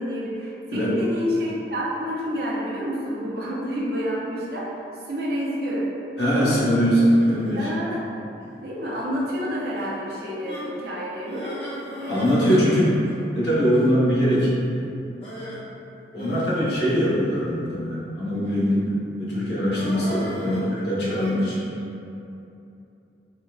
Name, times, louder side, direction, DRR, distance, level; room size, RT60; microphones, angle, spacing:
voice 1, 0.0-4.8 5.1-5.9 6.3-7.0 7.5-8.0 8.6-11.6 12.0-12.7, equal, 60° right, -5 dB, 0.6 m, -29 dB
voice 2, 6.2-7.7 12.1-12.9 13.3-14.9 16.1-18.9 19.2-21.7, equal, 70° left, -9 dB, 1.0 m, -22 dB
sound 1, 6.9-7.6 8.4-8.7 9.1-9.2 9.8-9.9 10.4-10.7 11.2-12.4 12.7-12.8 13.0-13.2 13.7-13.9 15.2-15.6 16.2-17.5 18.3-18.8 19.7-21.3, equal, 35° left, 0.9 m, -37 dB
4.5 x 2.3 x 2.3 m, 2.7 s
head